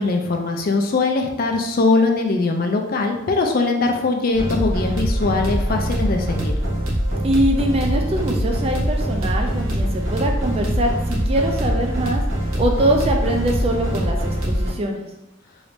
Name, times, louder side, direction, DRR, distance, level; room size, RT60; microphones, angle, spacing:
voice 1, 0.0-6.5, left 3 dB, 45° left, 3 dB, 0.4 m, -21 dB
sound 1, 4.3-14.7, equal, 90° right, 1.0 m, -23 dB
voice 2, 7.2-12.2 12.6-15.0, right 1 dB, 30° right, 2 dB, 0.4 m, -23 dB
3.1 x 2.5 x 3.2 m, 0.91 s
head